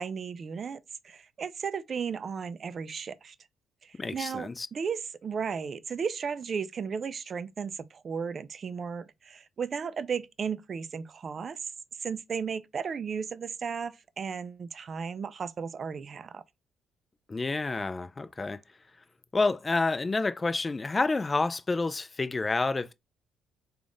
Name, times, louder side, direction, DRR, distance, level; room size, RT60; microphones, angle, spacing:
voice 1, 0.0-3.4 3.8-11.6 12.0-16.4, right 6 dB, 45° right, 0.4 m, -35 dB
voice 2, 4.0-4.7 17.3-18.6 19.3-22.9, left 3 dB, 25° left, 0.3 m, -29 dB
3.4 x 2.4 x 3.8 m
cardioid pair, 90°, 0 cm